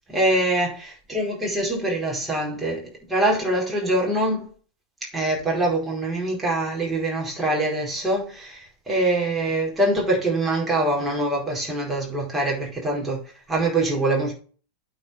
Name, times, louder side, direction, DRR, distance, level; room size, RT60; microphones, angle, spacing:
voice 1, 0.1-4.5 5.1-13.2 13.5-14.3, right 1 dB, 10° right, 4.7 m, -24 dB
9.0 x 4.8 x 5.7 m
figure-of-eight pair, 90°, 0 cm